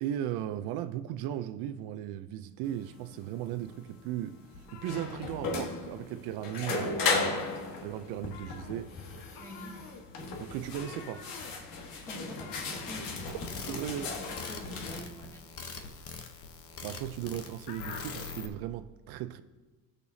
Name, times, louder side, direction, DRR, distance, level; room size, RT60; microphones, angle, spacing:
voice 1, 0.0-4.4 4.7-7.5 7.8-9.0 10.4-11.3 13.3-13.4 13.7-14.1 16.8-19.4, right 11 dB, 80° right, 0.6 m, -37 dB
sound 1, 2.6-15.0, left 4 dB, 60° left, 1.5 m, -36 dB
sound 2, 4.5-6.0 6.3-6.5 6.8-7.9 8.2-18.3, left 5 dB, 80° left, 1.2 m, -49 dB
voice 2, 9.4-9.8 12.1-16.2, equal, 5° left, 1.9 m, -47 dB
sound 3, 13.2-18.5, left 5 dB, 40° left, 0.9 m, -43 dB
17.0 x 6.7 x 2.7 m
cardioid pair, 155°, 36 cm